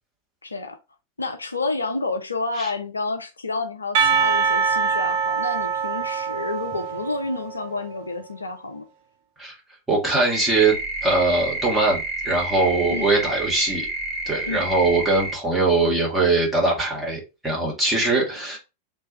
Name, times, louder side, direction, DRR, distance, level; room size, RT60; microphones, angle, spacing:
voice 1, 0.4-0.8 1.2-8.9 12.9-13.1 14.5-14.6 18.2-18.3, left 3 dB, 80° left, 0.4 m, -29 dB
Percussion, 3.9-7.8, right 6 dB, 50° right, 0.4 m, -24 dB
voice 2, 9.9-10.7 11.0-13.9 14.2-18.6, right 3 dB, 5° right, 1.7 m, -21 dB
sound 1, 10.3-15.4, right 2 dB, 30° right, 2.0 m, -29 dB
3.2 x 2.2 x 4.1 m
figure-of-eight pair, 90°, 0 cm